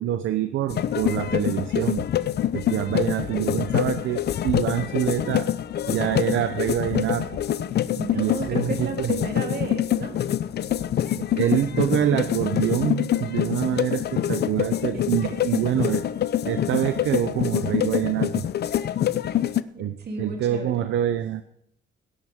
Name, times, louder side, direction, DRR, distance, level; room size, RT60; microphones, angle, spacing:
voice 1, 0.0-2.1 2.5-5.5 5.9-7.4 8.1-9.1 11.2-16.0 16.5-18.5 19.8-21.4, right 11 dB, 75° right, 10 dB, 0.7 m, -26 dB
sound 1, 0.7-19.6, left 11 dB, 55° left, 0.6 m, -25 dB
voice 2, 8.0-10.2 14.9-15.7 20.0-20.9, right 4 dB, 55° right, 2 dB, 3.2 m, -33 dB
17.5 x 10.5 x 3.7 m, 0.73 s
cardioid pair, 90°, 20 cm